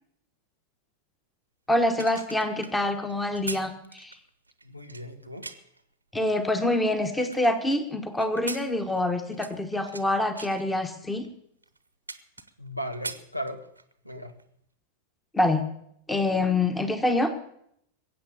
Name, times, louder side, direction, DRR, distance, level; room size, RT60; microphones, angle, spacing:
voice 1, 1.7-4.2 6.1-11.3 15.3-15.7 16.1-17.3, left 1 dB, 10° left, 9 dB, 1.5 m, -26 dB
sound 1, 1.8-5.8 6.4-7.8 8.2-10.1 10.4-10.6 11.2-11.3 11.6-12.7 12.9-13.9 14.3-14.5, right 3 dB, 80° right, 1.0 m, -41 dB
voice 2, 4.6-5.5 12.6-13.6 14.0-14.3, equal, 90° left, 9 dB, 1.6 m, -36 dB
21.5 x 8.5 x 7.0 m, 0.72 s
figure-of-eight pair, 90°, 0 cm